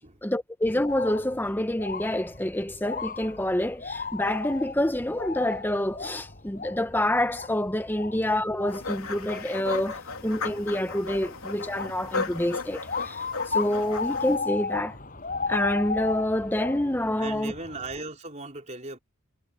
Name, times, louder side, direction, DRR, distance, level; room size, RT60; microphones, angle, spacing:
voice 1, 0.2-15.0 15.5-17.5, left 1 dB, 10° left, 0.9 m, -27 dB
sound 1, 0.6-18.0, left 4 dB, 40° left, 6.6 m, -36 dB
sound 2, 8.7-14.4, left 4 dB, 80° left, 3.3 m, -35 dB
voice 2, 17.2-19.0, right 3 dB, 35° right, 4.1 m, -38 dB
head